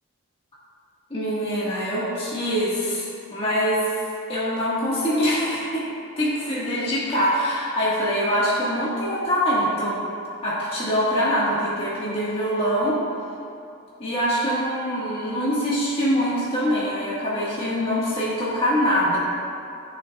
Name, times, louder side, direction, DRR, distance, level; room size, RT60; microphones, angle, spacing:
voice 1, 1.1-3.8 4.3-5.8 6.2-10.0 10.4-13.0 14.0-19.2, equal, 25° left, -8 dB, 1.5 m, -24 dB
14.5 x 6.9 x 2.3 m, 2.5 s
head